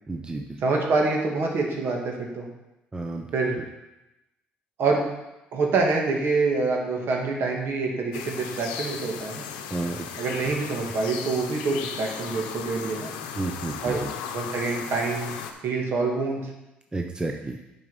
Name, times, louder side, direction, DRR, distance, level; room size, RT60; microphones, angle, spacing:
voice 1, 0.1-0.6 2.9-3.3 9.7-10.1 13.4-14.1 16.9-17.6, right 2 dB, 20° right, 3 dB, 0.8 m, -31 dB
voice 2, 0.6-2.5 3.3-3.6 4.8-5.0 5.5-9.4 10.2-13.1 13.8-14.0 14.3-15.4 15.6-16.5, right 3 dB, 60° right, 1 dB, 2.0 m, -26 dB
sound 1, 8.1-15.5, left 7 dB, 90° left, 0.7 m, -36 dB
7.8 x 5.4 x 5.5 m, 0.97 s
supercardioid pair, 70°, 4 cm